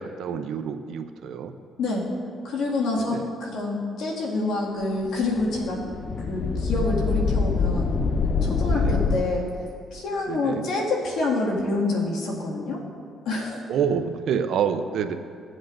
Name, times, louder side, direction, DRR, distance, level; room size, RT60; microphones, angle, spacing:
voice 1, 0.0-1.5 3.0-3.3 8.7-9.0 10.3-10.7 13.7-15.1, right 7 dB, 75° right, 9 dB, 0.6 m, -28 dB
voice 2, 1.8-2.1 2.4-5.8 6.3-7.9 8.4-9.4 9.9-12.8 13.3-13.6, left 2 dB, 80° left, -3 dB, 2.0 m, -27 dB
sound 1, 5.2-9.2, left 4 dB, 45° left, 0.5 m, -24 dB
16.5 x 7.9 x 2.6 m, 2.2 s
cardioid pair, 90°, 0 cm